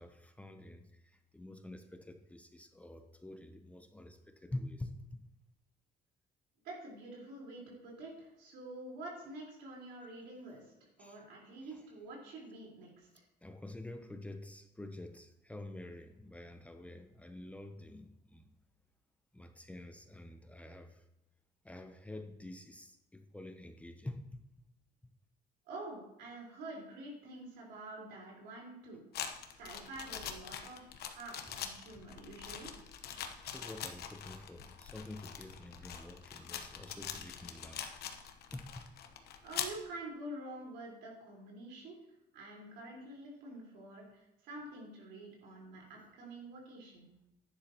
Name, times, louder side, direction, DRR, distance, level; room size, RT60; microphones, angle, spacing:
voice 1, 0.0-5.2 11.0-11.2 11.7-11.8 13.4-18.5 19.3-21.0 21.6-24.4 33.4-38.0 38.5-38.9, left 1 dB, 10° left, 6 dB, 0.7 m, -47 dB
voice 2, 6.6-13.2 25.7-29.0 29.6-32.7 39.4-42.0 42.3-47.1, right 2 dB, 80° right, -3 dB, 4.4 m, -48 dB
sound 1, 29.1-39.8, left 8 dB, 70° left, 1.1 m, -43 dB
11.0 x 10.0 x 3.0 m, 0.87 s
cardioid pair, 110°, 17 cm